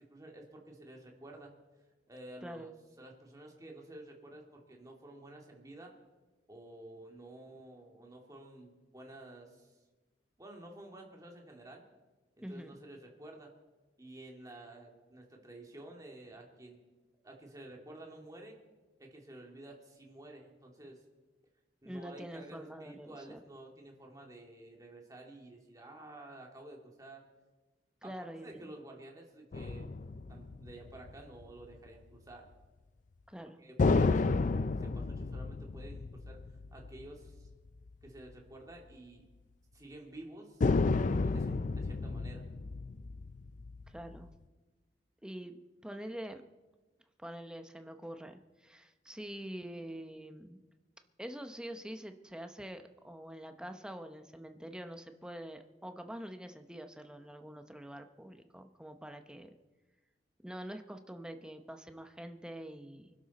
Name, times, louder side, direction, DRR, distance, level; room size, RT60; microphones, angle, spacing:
voice 1, 0.0-1.6 2.1-5.9 6.5-9.8 10.4-11.8 12.4-13.5 14.0-16.8 17.2-18.6 19.0-21.0 21.8-27.2 28.0-29.9 30.3-32.5 33.6-36.4 36.7-37.5 38.0-39.2 39.7-40.6 40.9-42.4, right 1 dB, 20° right, 0 dB, 2.3 m, -51 dB
voice 2, 12.4-12.7 21.8-23.4 28.0-28.7 33.3-33.6 43.9-44.3 45.2-46.4 47.2-50.6 51.2-59.5 60.4-63.1, right 1 dB, 5° right, 7 dB, 0.8 m, -45 dB
sound 1, 29.5-31.4 33.8-37.5 37.9-38.0 40.6-44.3, left 3 dB, 45° left, 0.4 m, -32 dB
24.5 x 11.5 x 4.1 m, 1.2 s
head